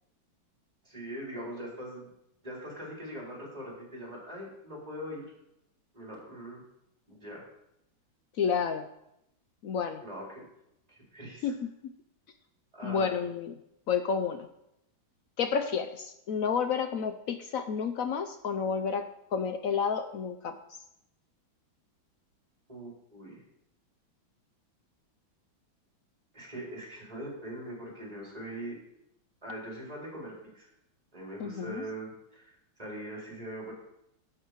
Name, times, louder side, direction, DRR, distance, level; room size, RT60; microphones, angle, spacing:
voice 1, 0.8-2.1 2.4-5.2 5.9-6.6 7.1-7.4 10.0-10.4 10.9-11.5 12.7-13.2 22.7-23.4 26.3-28.8 29.4-30.7 31.1-32.5 32.8-33.7, right 1 dB, 20° right, -3 dB, 3.9 m, -41 dB
voice 2, 8.4-8.9 9.6-10.0 11.4-11.5 12.8-13.5 13.9-14.5 15.4-19.0 19.3-20.5 31.4-31.8, left 6 dB, 75° left, 8 dB, 0.7 m, -30 dB
12.0 x 7.5 x 4.7 m, 0.82 s
omnidirectional pair, 2.1 m